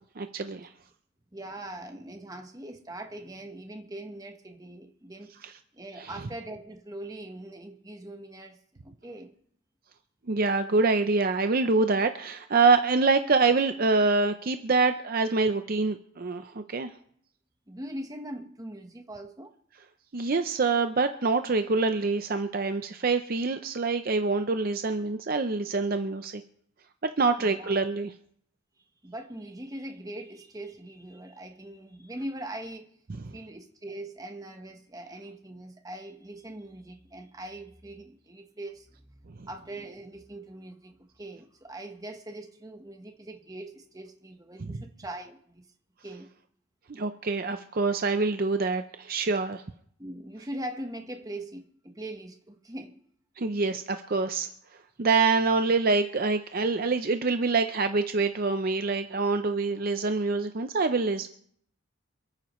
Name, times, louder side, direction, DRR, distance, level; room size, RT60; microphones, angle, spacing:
voice 1, 0.2-0.7 6.0-6.1 10.3-16.9 20.1-26.4 27.2-28.1 44.6-44.8 46.9-49.6 53.4-54.5 55.0-61.3, right 3 dB, 45° right, 8 dB, 0.6 m, -25 dB
voice 2, 1.3-5.3 5.7-8.6 8.8-9.4 17.7-19.5 21.0-21.1 27.4-27.7 29.0-32.9 33.3-39.2 39.5-45.7 46.0-46.3 50.0-53.0, right 1 dB, 15° right, 5 dB, 1.1 m, -41 dB
28.0 x 9.4 x 3.1 m, 0.64 s
head